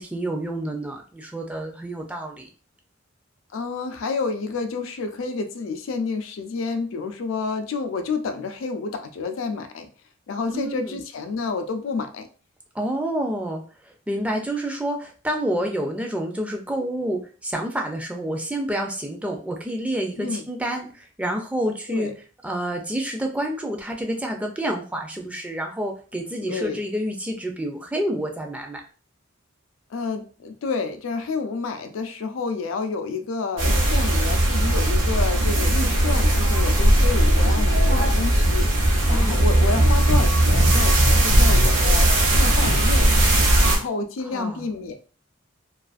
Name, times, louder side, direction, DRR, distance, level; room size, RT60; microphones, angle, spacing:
voice 1, 0.0-2.5 10.5-10.9 12.7-22.1 22.4-28.8 39.0-39.4 44.3-44.6, right 1 dB, 5° right, 2 dB, 0.4 m, -28 dB
voice 2, 3.5-9.9 10.3-12.3 20.2-20.4 21.9-22.1 26.4-26.8 29.9-38.7 39.1-43.1 43.6-44.9, left 4 dB, 85° left, 8 dB, 0.4 m, -29 dB
sound 1, 33.6-43.8, right 1 dB, 70° right, 0.8 m, -18 dB
2.4 x 2.3 x 2.4 m, 0.38 s
head